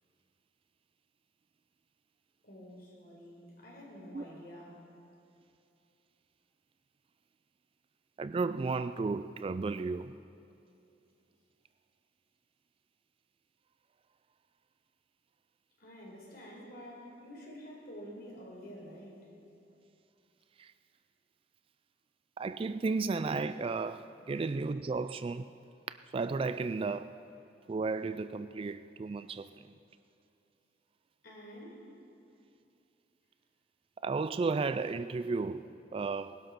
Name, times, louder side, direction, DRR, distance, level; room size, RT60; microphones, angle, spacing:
voice 1, 2.4-4.9 15.8-19.3 31.2-31.8, equal, 55° left, 4.5 m, -49 dB
voice 2, 8.2-10.1 20.6-20.7 22.4-25.5 25.9-27.2 27.7-29.5 34.0-35.7 35.9-36.4, right 4 dB, 30° right, 0.3 m, -33 dB
20.0 x 11.5 x 5.9 m
head